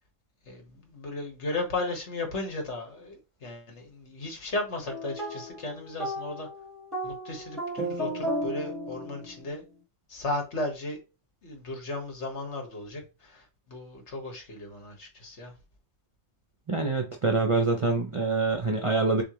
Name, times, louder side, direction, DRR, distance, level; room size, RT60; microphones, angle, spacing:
voice 1, 0.5-6.5 7.0-9.6 10.1-11.0 11.4-15.5, left 2 dB, 60° left, 1.7 m, -35 dB
sound 1, 4.9-9.5, right 1 dB, ahead, 1.3 m, -34 dB
voice 2, 16.7-19.2, right 3 dB, 40° right, 0.4 m, -25 dB
6.7 x 2.4 x 3.0 m
omnidirectional pair, 1.3 m